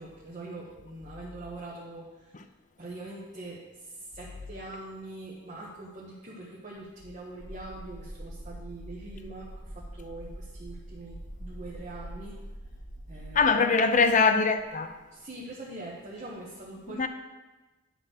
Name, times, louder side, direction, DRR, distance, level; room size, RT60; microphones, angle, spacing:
voice 1, 0.0-2.3 2.8-12.4 13.1-13.6 15.1-17.1, right 2 dB, 35° right, 1.2 m, -43 dB
sound 1, 7.4-13.4, right 1 dB, 20° left, 2.1 m, -43 dB
voice 2, 13.3-14.9 17.0-17.1, left 4 dB, 40° left, 0.6 m, -22 dB
9.8 x 4.4 x 6.2 m
head